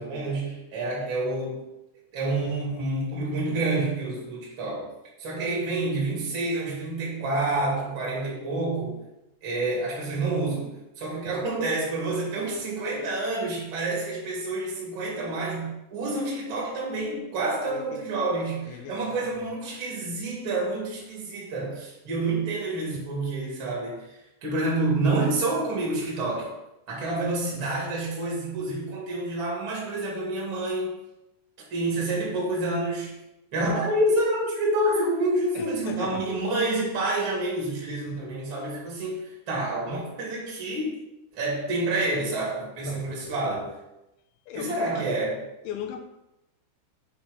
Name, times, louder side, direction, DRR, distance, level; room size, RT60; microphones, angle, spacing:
voice 1, 0.0-1.6 2.1-4.9 5.2-9.0 9.4-24.1 24.4-26.5 26.9-31.0 31.7-33.2 33.5-41.0 41.3-43.7 44.5-45.4, right 2 dB, 35° right, -4 dB, 2.4 m, -28 dB
voice 2, 17.7-18.1 18.7-19.3 27.5-27.7 35.6-36.2 42.8-43.6 44.5-45.2 45.6-46.0, left 8 dB, 85° left, 4 dB, 3.3 m, -38 dB
8.6 x 5.0 x 5.3 m, 0.91 s
omnidirectional pair, 5.4 m